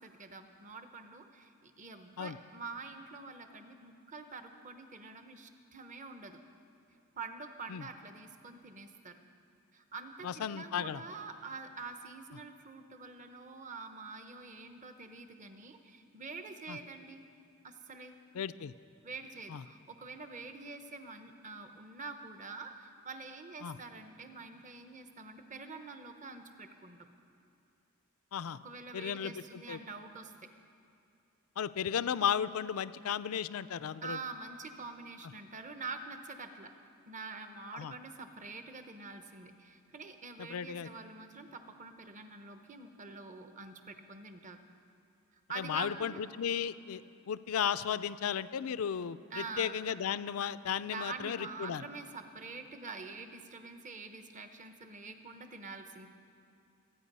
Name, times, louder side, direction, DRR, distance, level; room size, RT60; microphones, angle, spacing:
voice 1, 0.0-6.4 7.2-9.2 9.7-17.2 17.6-18.1 19.0-27.1 28.6-30.3 34.0-36.7 37.1-44.6 45.5-46.2 49.3-49.8 50.8-56.1, right 4 dB, 35° right, 7 dB, 0.8 m, -46 dB
voice 2, 10.2-11.0 16.7-16.8 18.3-18.7 19.5-19.6 23.6-23.8 28.3-28.6 28.9-29.8 31.6-34.2 37.7-37.9 40.4-40.9 45.6-47.0 47.3-51.8, left 8 dB, 75° left, 15 dB, 0.4 m, -35 dB
25.0 x 9.0 x 5.4 m, 2.6 s
head